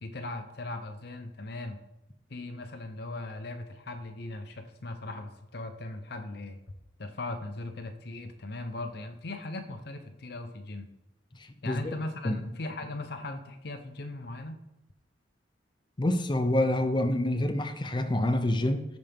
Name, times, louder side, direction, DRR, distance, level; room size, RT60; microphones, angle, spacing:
voice 1, 0.0-1.8 2.3-6.6 7.0-10.9 11.6-14.6, left 2 dB, 60° left, 6 dB, 0.8 m, -39 dB
voice 2, 16.0-18.9, left 1 dB, 25° left, 9 dB, 0.5 m, -27 dB
14.5 x 5.2 x 3.5 m, 0.85 s
head